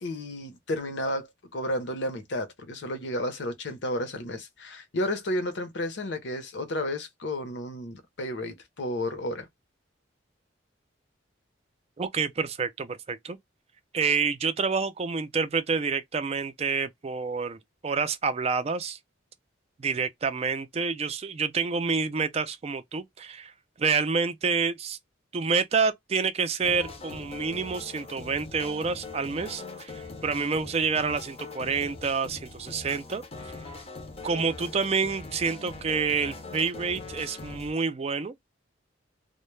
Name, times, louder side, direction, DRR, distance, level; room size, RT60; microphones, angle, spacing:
voice 1, 0.0-9.5, left 1 dB, 70° left, 0.7 m, -32 dB
voice 2, 12.0-13.4 13.9-19.0 19.8-23.5 23.8-25.0 25.3-33.2 34.2-38.3, right 5 dB, 35° right, 0.4 m, -28 dB
sound 1, 26.6-37.7, left 3 dB, 30° left, 0.5 m, -42 dB
2.1 x 2.1 x 3.1 m
head